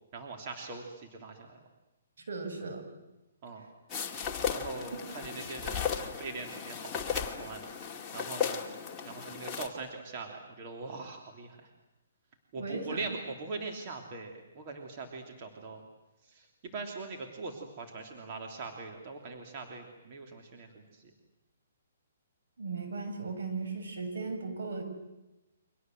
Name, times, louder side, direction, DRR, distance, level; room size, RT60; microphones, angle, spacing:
voice 1, 0.1-0.8 1.1-1.6 3.4-3.6 4.5-7.6 8.1-8.6 9.0-11.6 12.5-15.8 16.3-21.1, right 3 dB, 35° right, 2 dB, 3.3 m, -42 dB
voice 2, 2.3-2.8 4.9-5.0 12.5-13.0 22.6-24.8, right 4 dB, 75° right, 5 dB, 7.3 m, -36 dB
sound 1, 3.9-9.7, left 7 dB, 15° left, 2.5 m, -35 dB
30.0 x 25.0 x 7.9 m, 0.99 s
hypercardioid pair, 155°, 0 cm